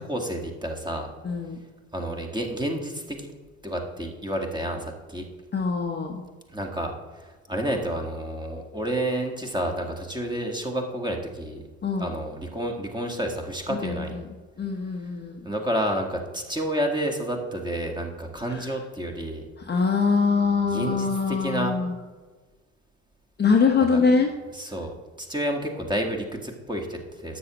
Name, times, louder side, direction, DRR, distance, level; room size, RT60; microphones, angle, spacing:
voice 1, 0.0-1.1 1.9-3.3 3.6-5.2 6.5-6.9 7.2-11.6 12.0-14.2 15.4-19.4 20.7-21.8 23.9-24.0 24.5-27.4, right 1 dB, 10° right, 2 dB, 1.6 m, -30 dB
voice 2, 1.2-1.6 5.5-6.2 11.8-12.2 13.7-14.3 14.6-15.4 18.5-18.7 19.6-21.9 23.4-24.3, left 5 dB, 25° left, 2 dB, 1.0 m, -23 dB
12.5 x 7.6 x 3.0 m, 1.3 s
figure-of-eight pair, 60°, 39 cm